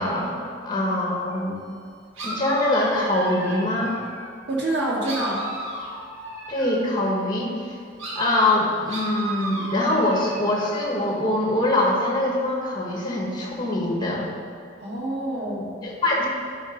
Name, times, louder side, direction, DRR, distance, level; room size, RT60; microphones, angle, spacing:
voice 1, 0.0-1.6 2.2-4.0 6.5-7.7 8.1-14.3 15.8-16.3, left 1 dB, 20° left, -2 dB, 1.4 m, -23 dB
sound 1, 1.3-1.4 2.2-4.4 5.0-6.9 8.0-10.9, right 1 dB, 85° right, 1.8 m, -34 dB
voice 2, 4.5-5.5 14.8-15.9, right 1 dB, 55° right, -5 dB, 1.9 m, -27 dB
11.0 x 3.9 x 5.2 m, 2.3 s
head